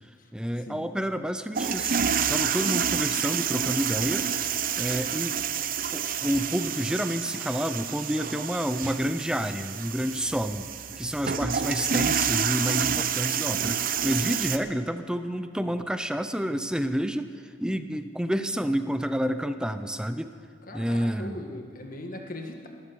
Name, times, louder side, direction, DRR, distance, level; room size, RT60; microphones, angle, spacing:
voice 1, 0.3-4.3 4.8-5.4 5.9-10.7 11.0-17.3 17.6-20.3 20.7-21.4, equal, 5° right, 10 dB, 0.6 m, -29 dB
sound 1, 1.6-14.6, right 7 dB, 45° right, 0.7 m, -28 dB
voice 2, 20.6-22.7, left 1 dB, 45° left, 3 dB, 1.6 m, -40 dB
13.0 x 13.0 x 7.0 m, 2.1 s
head